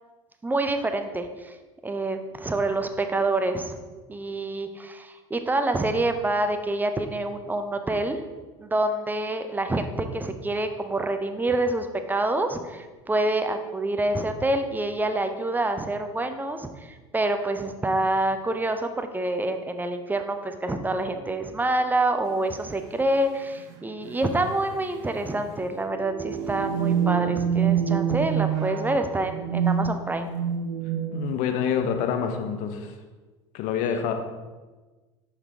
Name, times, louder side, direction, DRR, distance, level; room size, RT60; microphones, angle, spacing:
voice 1, 0.4-1.5 1.8-3.8 4.1-8.2 8.6-30.3, right 2 dB, 10° right, 7 dB, 0.6 m, -27 dB
sound 1, 22.4-22.5 23.4-23.8 24.0-24.1 24.5-24.8 25.8-31.5, right 8 dB, 55° right, 0.9 m, -26 dB
voice 2, 31.1-32.9 33.5-34.1, left 8 dB, 55° left, 6 dB, 0.8 m, -26 dB
5.7 x 5.6 x 3.5 m, 1.3 s
figure-of-eight pair, 75°, 16 cm